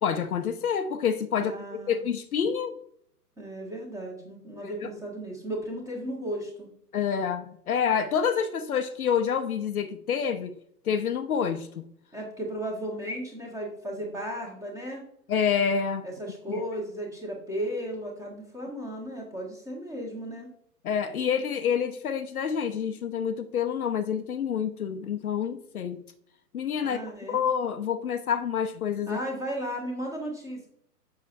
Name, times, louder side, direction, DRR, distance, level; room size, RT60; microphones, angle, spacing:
voice 1, 0.0-2.7 4.6-4.7 6.9-10.6 10.9-11.8 15.3-16.1 16.5-16.6 20.8-26.0 26.5-27.0 27.3-29.2, left 7 dB, 65° left, 0.7 m, -28 dB
voice 2, 1.3-2.0 3.4-6.7 12.1-15.0 16.0-20.5 26.8-27.4 29.1-30.7, right 1 dB, 5° right, 1.3 m, -35 dB
7.0 x 5.6 x 2.6 m
figure-of-eight pair, 120°, 48 cm